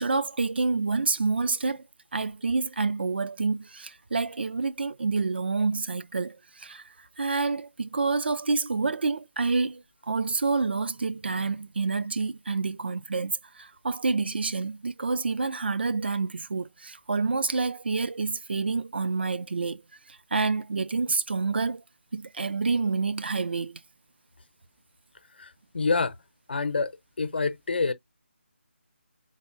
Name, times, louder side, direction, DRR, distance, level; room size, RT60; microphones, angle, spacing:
voice 1, 0.0-1.8 2.1-6.8 7.2-19.8 20.1-21.8 22.1-23.8, right 4 dB, 55° right, 0.4 m, -28 dB
voice 2, 25.4-26.1 26.5-26.9 27.2-27.9, left 4 dB, 55° left, 0.8 m, -27 dB
5.3 x 4.0 x 2.5 m
figure-of-eight pair, 155°, 7 cm